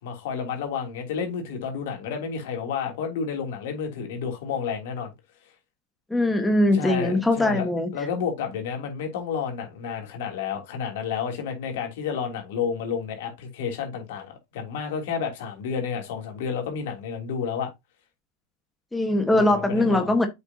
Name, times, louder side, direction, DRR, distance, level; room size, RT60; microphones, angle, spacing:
voice 1, 0.0-5.1 6.7-7.7 7.9-17.7 19.3-20.1, left 6 dB, 65° left, 2.9 m, -30 dB
voice 2, 6.1-7.9 18.9-20.3, left 1 dB, 5° left, 1.4 m, -21 dB
7.8 x 5.8 x 2.8 m
hypercardioid pair, 100°, 0 cm